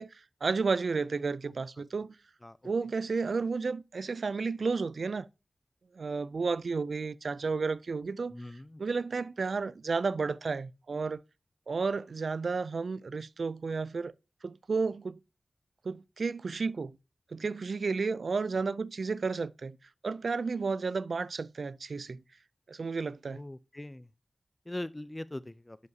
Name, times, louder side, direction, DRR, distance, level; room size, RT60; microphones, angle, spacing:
voice 1, 0.0-2.1 2.6-5.3 5.9-8.3 8.8-11.2 11.7-14.1 14.4-15.2 15.8-17.0 17.3-19.8 20.0-22.2 22.7-23.4, right 4 dB, 75° right, 0.3 m, -32 dB
voice 2, 8.3-8.8 23.3-24.1 24.7-25.8, left 1 dB, 20° left, 0.5 m, -41 dB
10.5 x 5.3 x 2.7 m
wide cardioid pair, 90°, 0 cm